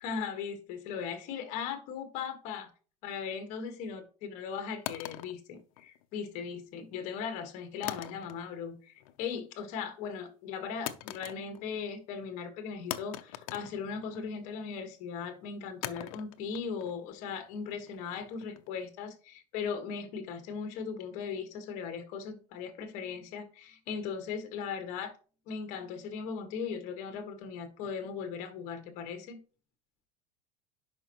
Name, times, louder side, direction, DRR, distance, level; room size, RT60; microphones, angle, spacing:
voice 1, 0.0-2.7 3.0-25.2 25.5-29.4, left 6 dB, 40° left, 1.3 m, -38 dB
sound 1, 4.9-6.3 7.8-8.7 9.0-9.4 10.9-11.8 12.1-12.2 12.9-14.4 15.8-18.8, left 14 dB, 65° left, 0.6 m, -43 dB
10.5 x 5.3 x 2.9 m
supercardioid pair, 180°, 19 cm